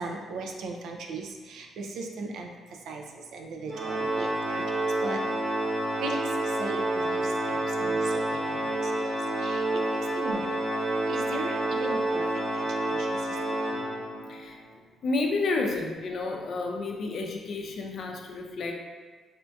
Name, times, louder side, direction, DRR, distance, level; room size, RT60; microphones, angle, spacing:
voice 1, 0.0-2.5 2.9-3.0 3.3-4.6 5.0-5.2 6.0-6.2 6.6-7.2 7.5-8.9 9.4-9.8 10.1-10.5 11.1-12.2 12.5-13.1 13.5-13.6, right 3 dB, 75° right, 2 dB, 0.4 m, -37 dB
Organ, 3.7-14.4, right 1 dB, 45° right, 0.8 m, -29 dB
voice 2, 15.0-18.7, left 3 dB, 60° left, 1 dB, 0.5 m, -30 dB
4.2 x 2.6 x 2.2 m, 1.4 s
cardioid pair, 90°, 0 cm